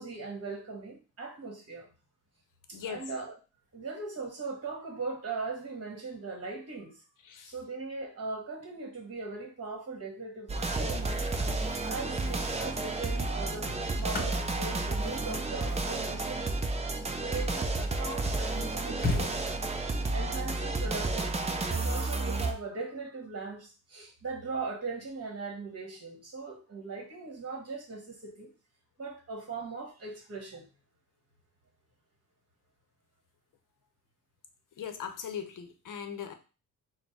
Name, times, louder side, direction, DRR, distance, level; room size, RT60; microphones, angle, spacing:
voice 1, 0.0-1.9 2.7-3.3 3.7-6.9 7.5-11.2 11.8-16.7 17.2-19.4 20.1-28.5 29.0-30.7, right 4 dB, 40° right, 1 dB, 1.5 m, -39 dB
voice 2, 2.7-3.0 7.3-7.5 34.8-36.3, left 7 dB, 60° left, 8 dB, 0.8 m, -39 dB
sound 1, 10.5-22.5, right 2 dB, 20° right, 0.5 m, -31 dB
sound 2, 13.6-17.8 18.4-18.5 18.7-19.9 21.6-21.8, left 3 dB, 25° left, 1.1 m, -39 dB
4.3 x 2.2 x 4.5 m, 0.34 s
cardioid pair, 100°, 36 cm